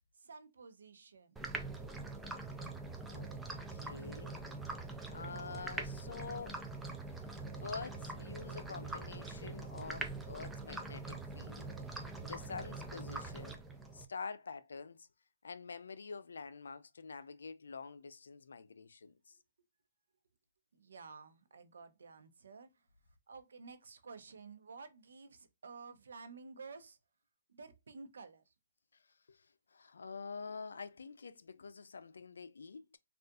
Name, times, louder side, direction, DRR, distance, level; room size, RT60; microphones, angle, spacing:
voice 1, 0.2-1.4 20.7-22.9 23.3-27.0 27.5-28.5, right 4 dB, 80° right, 0.6 m, -52 dB
sound 1, 1.4-14.1, right 3 dB, 5° right, 0.3 m, -43 dB
voice 2, 3.7-4.4 5.1-6.6 7.5-11.7 12.2-13.6 13.9-15.1 15.4-19.4 29.3-33.0, left 5 dB, 90° left, 0.4 m, -47 dB
3.7 x 2.4 x 2.3 m
hypercardioid pair, 165°, 0 cm